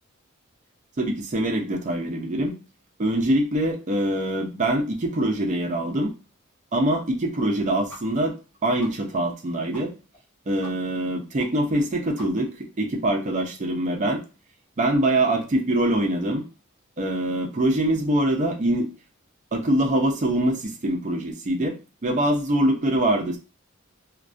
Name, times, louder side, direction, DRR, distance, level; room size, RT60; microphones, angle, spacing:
voice 1, 1.0-2.6 3.0-6.1 6.7-8.4 8.6-9.9 10.5-14.2 14.8-16.5 17.0-18.9 19.5-21.8 22.0-23.4, right 1 dB, 35° right, 2 dB, 0.4 m, -24 dB
sound 1, 7.9-8.0 8.3-8.4 8.8-8.9 9.3-9.4 9.7-9.8 10.1-10.2 10.6-10.7 11.0-11.1 11.4-11.5 11.8-11.9 12.2-12.6, left 1 dB, 10° left, 0.9 m, -43 dB
2.4 x 2.2 x 2.4 m, 0.31 s
head